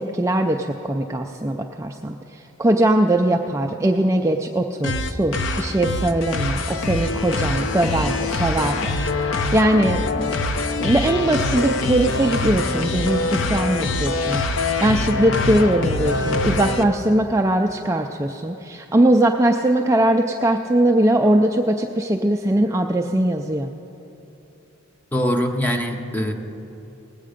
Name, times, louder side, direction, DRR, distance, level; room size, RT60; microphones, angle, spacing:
voice 1, 0.0-10.3 10.8-23.7, right 1 dB, 15° right, 2 dB, 0.3 m, -21 dB
sound 1, 4.8-16.8, left 2 dB, 70° left, 0.6 m, -24 dB
voice 2, 25.1-26.3, equal, 10° left, 4 dB, 0.7 m, -22 dB
19.0 x 8.4 x 5.0 m, 2.9 s
head